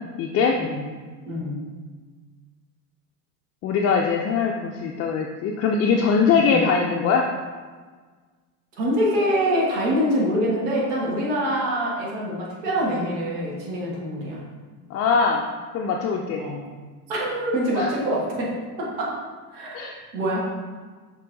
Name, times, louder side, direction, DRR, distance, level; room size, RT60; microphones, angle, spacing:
voice 1, 0.2-0.6 3.6-7.3 14.9-15.4 15.7-16.4 17.8-17.9 19.7-20.0, left 5 dB, 35° left, 0 dB, 0.4 m, -21 dB
voice 2, 1.3-1.6 6.3-6.7 8.8-14.4 16.4-16.6 17.1-19.2 19.5-19.8 20.1-20.5, equal, 70° right, -4 dB, 1.4 m, -25 dB
6.6 x 3.1 x 2.5 m, 1.5 s
hypercardioid pair, 75°, 47 cm